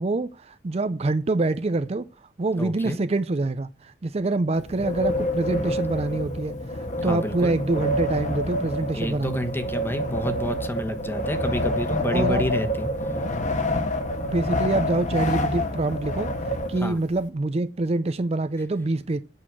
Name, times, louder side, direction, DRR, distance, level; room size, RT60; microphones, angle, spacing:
voice 1, 0.0-9.5 12.1-12.5 14.2-19.2, right 2 dB, 35° right, 0.5 m, -26 dB
voice 2, 2.6-3.0 5.5-5.7 7.0-7.6 8.9-12.9 16.8-17.0, left 1 dB, 10° left, 1.2 m, -29 dB
Wind, 4.6-17.2, left 1 dB, 45° left, 1.4 m, -27 dB
8.4 x 6.4 x 7.5 m
head